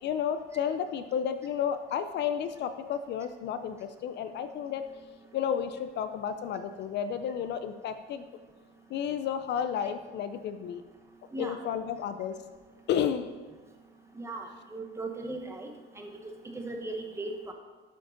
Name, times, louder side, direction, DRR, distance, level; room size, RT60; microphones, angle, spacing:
voice 1, 0.0-4.8 5.3-8.2 8.9-10.8 11.4-12.3 12.9-13.3, left 8 dB, 55° left, 10 dB, 0.5 m, -32 dB
voice 2, 14.1-15.7 16.0-16.1 16.5-17.5, right 2 dB, 10° right, 3 dB, 0.9 m, -37 dB
9.0 x 5.3 x 5.0 m, 1.4 s
cardioid pair, 145°, 21 cm